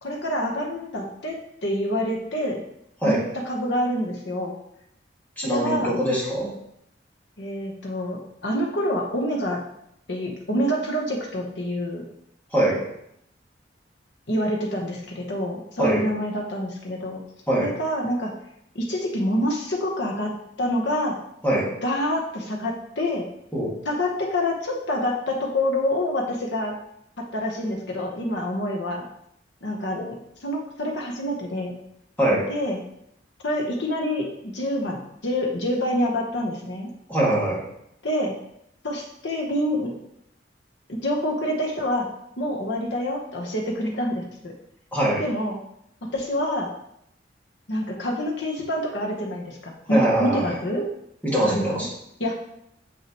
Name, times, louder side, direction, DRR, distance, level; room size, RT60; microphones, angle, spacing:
voice 1, 0.0-2.6 3.0-4.5 5.4-6.0 7.4-9.6 10.1-12.0 14.3-17.2 17.5-18.3 18.7-20.3 20.6-21.2 21.8-23.2 23.8-26.8 27.2-29.0 29.6-30.0 30.4-31.8 32.5-32.8 33.4-36.9 38.0-38.3 38.8-39.9 40.9-42.1 42.4-44.5 45.2-45.6 46.1-46.7 47.7-50.9 51.4-51.9 52.2-52.4, equal, 70° left, 0 dB, 1.0 m, -27 dB
voice 2, 5.4-6.5 12.5-12.8 15.8-16.0 17.5-17.7 21.4-21.7 23.5-23.7 29.9-30.1 32.2-32.4 37.1-37.6 44.9-45.2 49.9-50.5 51.2-51.9, right 1 dB, 10° left, -6 dB, 1.9 m, -22 dB
6.6 x 6.1 x 3.0 m, 0.76 s
head